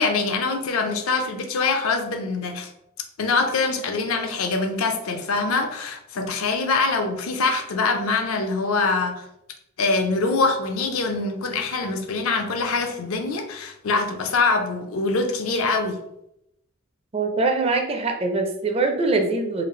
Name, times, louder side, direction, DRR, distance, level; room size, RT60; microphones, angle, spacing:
voice 1, 0.0-2.7 3.2-9.2 9.8-16.0, left 3 dB, 70° left, 5 dB, 0.5 m, -24 dB
voice 2, 17.1-19.6, right 3 dB, 30° right, 4 dB, 0.4 m, -23 dB
3.2 x 2.4 x 3.7 m, 0.82 s
head